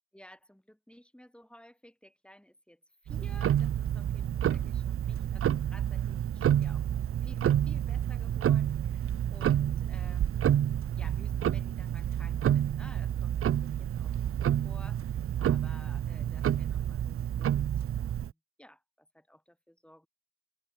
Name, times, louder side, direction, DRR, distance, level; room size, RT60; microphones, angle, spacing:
voice 1, 0.1-6.9 7.2-20.1, equal, ahead, 7.1 m, -56 dB
Tick-tock, 3.1-18.3, right 10 dB, 30° right, 0.6 m, -29 dB
open air
hypercardioid pair, 60°, 45 cm